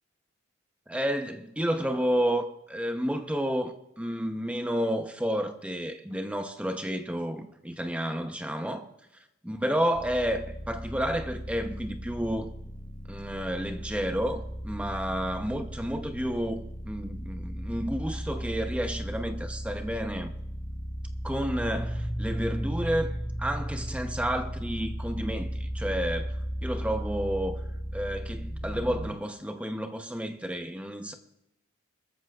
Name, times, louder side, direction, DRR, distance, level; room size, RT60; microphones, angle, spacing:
voice 1, 0.9-8.9 9.4-12.5 13.1-20.3 21.2-26.4 26.6-27.6 27.9-31.1, equal, 5° right, 0.8 m, -31 dB
sound 1, 9.9-29.1, equal, 25° left, 1.3 m, -35 dB
21.0 x 13.5 x 2.4 m
head